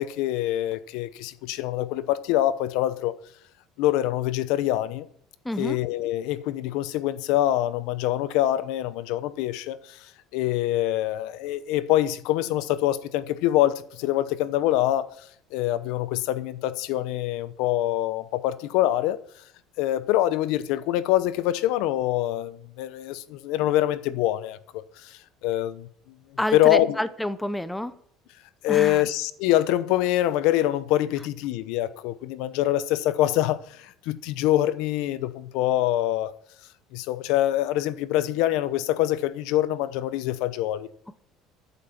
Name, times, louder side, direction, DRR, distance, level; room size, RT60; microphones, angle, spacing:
voice 1, 0.0-3.1 3.8-5.1 5.6-19.2 19.8-25.9 26.5-27.0 28.6-36.3 36.9-40.9, left 14 dB, 75° left, 0.8 m, -25 dB
voice 2, 5.4-5.8 26.4-27.9 28.7-29.0, left 1 dB, 5° left, 0.6 m, -28 dB
14.0 x 8.2 x 5.9 m
cardioid pair, 155°, 0 cm